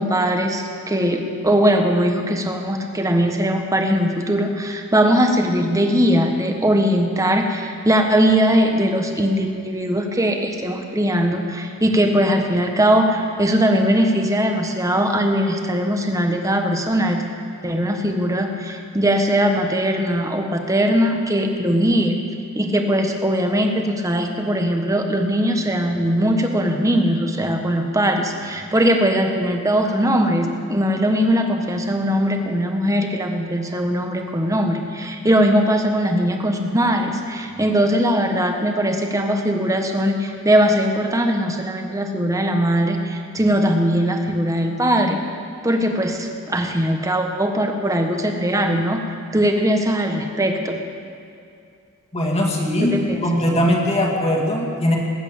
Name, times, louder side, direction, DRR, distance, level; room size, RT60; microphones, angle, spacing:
voice 1, 0.0-17.2 17.6-22.2 22.5-45.2 45.6-49.1 49.3-50.8 52.8-53.2, equal, 15° right, 4 dB, 1.2 m, -20 dB
voice 2, 52.1-53.0 53.2-55.0, left 1 dB, 25° left, -1 dB, 2.0 m, -20 dB
19.5 x 8.0 x 8.7 m, 2.4 s
head